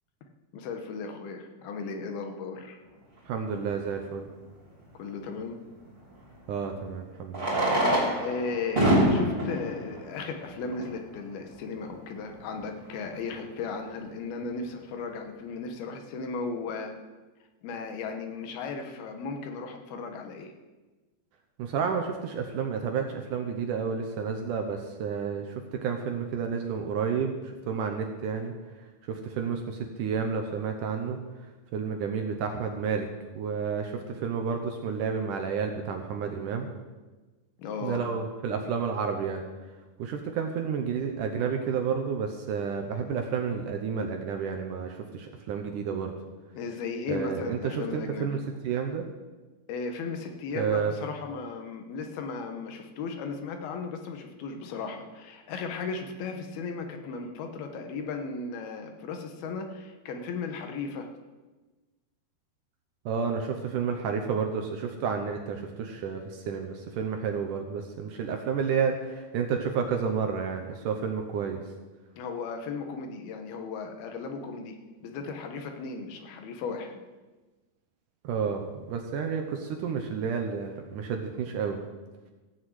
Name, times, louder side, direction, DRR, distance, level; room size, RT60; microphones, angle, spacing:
voice 1, 0.5-2.8 4.9-5.6 8.2-16.9 17.6-20.5 37.6-38.1 46.5-48.3 49.7-61.1 72.2-74.8 75.0-77.0, left 4 dB, 75° left, 5 dB, 3.0 m, -36 dB
voice 2, 3.3-4.3 6.5-7.6 21.6-28.5 29.0-31.2 31.7-33.1 33.4-36.7 37.8-39.4 40.0-46.1 47.1-49.1 50.5-50.9 63.1-71.6 78.2-81.8, right 6 dB, 70° right, 4 dB, 2.1 m, -30 dB
Fireworks, 3.7-3.8 6.1-6.2 7.3-11.0 11.8-11.9 12.1-12.2 12.4-12.5 13.0-13.2, right 1 dB, 15° right, 2.8 m, -26 dB
15.0 x 6.3 x 7.9 m, 1.2 s
omnidirectional pair, 4.5 m